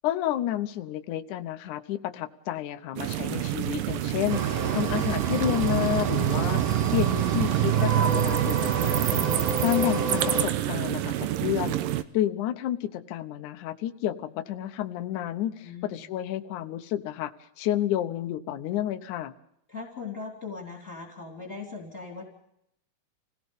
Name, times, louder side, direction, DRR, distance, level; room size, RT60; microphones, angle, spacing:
voice 1, 0.0-9.3 9.6-11.8 12.1-19.3, left 12 dB, 70° left, 8 dB, 2.3 m, -30 dB
sound 1, 3.0-12.0, right 13 dB, 80° right, 2.6 m, -27 dB
sound 2, 4.3-10.4, right 4 dB, 50° right, 2.7 m, -30 dB
voice 2, 15.6-16.1 19.7-22.3, left 4 dB, 20° left, 1 dB, 3.2 m, -39 dB
28.0 x 18.0 x 5.4 m, 0.76 s
omnidirectional pair, 4.0 m